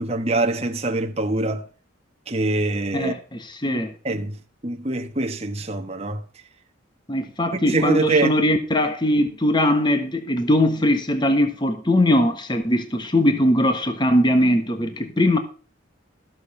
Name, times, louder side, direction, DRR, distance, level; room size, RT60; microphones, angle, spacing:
voice 1, 0.0-1.7 2.3-3.1 3.7-6.2 7.5-8.4, right 2 dB, 30° right, 1.1 m, -24 dB
voice 2, 2.9-3.9 7.1-15.4, left 1 dB, 20° left, 1.2 m, -20 dB
13.5 x 7.0 x 5.5 m
head